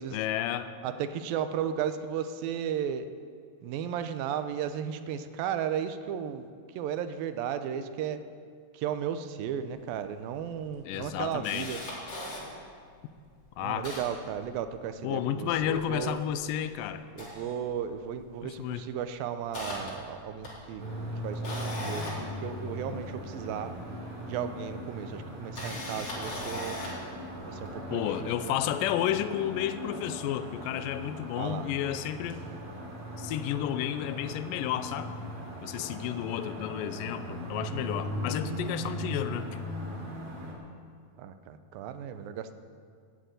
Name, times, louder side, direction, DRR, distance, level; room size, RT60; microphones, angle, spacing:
voice 1, 0.1-0.7 10.9-11.8 13.6-13.9 15.0-17.1 18.4-18.8 27.9-32.4 33.2-35.1 35.6-39.6, left 11 dB, 80° left, 11 dB, 2.2 m, -32 dB
voice 2, 0.8-3.1 3.6-6.5 6.8-8.2 8.7-11.8 13.6-16.2 17.2-20.8 21.2-22.1 22.4-23.7 24.3-26.8 27.5-28.6 31.4-31.7 41.2-42.5, right 8 dB, 80° right, 10 dB, 2.4 m, -34 dB
Camera, 9.8-9.9 10.2-10.3 10.8-12.4 13.0-13.1 13.4-15.0 15.4-16.6 17.0-18.2 18.4-18.7 19.1-23.2 24.2-24.3 25.3-27.1 27.7-27.8, left 1 dB, 40° left, 4.5 m, -40 dB
sound 1, 20.8-40.5, equal, 40° right, 3.5 m, -39 dB
14.5 x 9.1 x 9.1 m, 2.2 s
omnidirectional pair, 4.3 m